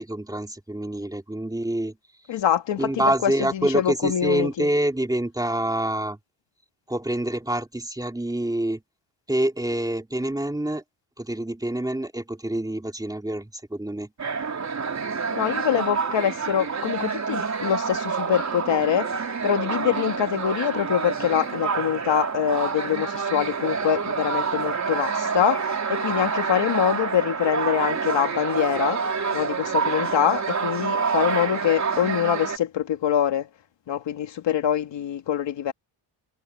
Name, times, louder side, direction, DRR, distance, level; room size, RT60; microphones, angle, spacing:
voice 1, 0.0-1.9 2.8-6.2 6.9-8.8 9.3-10.8 11.2-14.1, right 1 dB, 10° right, 2.8 m, -26 dB
voice 2, 2.3-4.7 15.3-19.1 19.4-29.0 29.3-33.5 33.9-35.7, left 9 dB, 65° left, 2.1 m, -24 dB
sound 1, 14.2-32.6, right 5 dB, 35° right, 4.1 m, -27 dB
cardioid pair, 130°, 47 cm